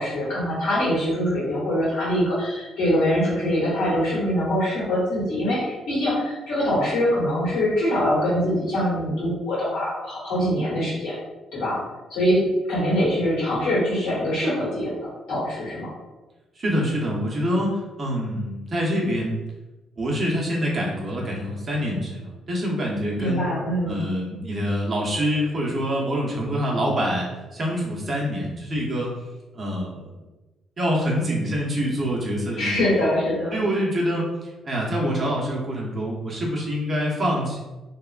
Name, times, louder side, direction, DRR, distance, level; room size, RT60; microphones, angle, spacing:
voice 1, 0.0-11.2 11.5-11.8 12.1-12.4 12.7-14.9 15.3-15.9 23.2-24.0 32.6-33.6, equal, 85° left, -8 dB, 1.5 m, -23 dB
voice 2, 16.6-19.4 20.0-23.5 23.9-27.3 27.5-29.1 29.5-30.1 30.8-32.9 33.5-37.6, equal, 40° right, -3 dB, 0.8 m, -25 dB
2.8 x 2.2 x 2.4 m, 1.1 s
cardioid pair, 90°, 0 cm